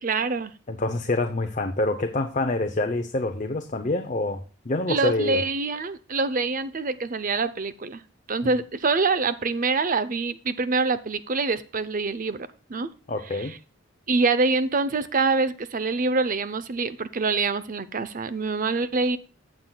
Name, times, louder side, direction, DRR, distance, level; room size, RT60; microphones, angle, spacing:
voice 1, 0.0-0.5 4.9-8.0 8.3-12.9 13.4-13.5 14.1-19.2, right 3 dB, 40° right, 14 dB, 0.6 m, -25 dB
voice 2, 0.7-5.4 8.4-8.5 13.1-13.6, left 2 dB, 35° left, 6 dB, 0.6 m, -26 dB
15.5 x 7.4 x 2.3 m, 0.34 s
head